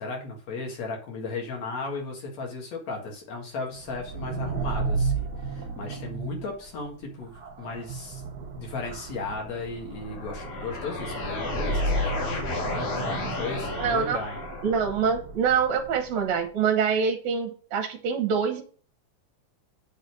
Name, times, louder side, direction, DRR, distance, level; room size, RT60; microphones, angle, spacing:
voice 1, 0.0-8.2 8.5-12.5 13.0-14.4, left 3 dB, 65° left, 0 dB, 3.0 m, -36 dB
sound 1, 3.8-16.4, right 3 dB, 50° right, 1.2 m, -33 dB
sound 2, 9.9-14.9, left 3 dB, 90° left, 4.1 m, -33 dB
voice 2, 13.8-14.2 14.6-18.6, right 6 dB, 70° right, 4 dB, 2.1 m, -25 dB
7.8 x 4.1 x 6.4 m, 0.42 s
omnidirectional pair, 3.4 m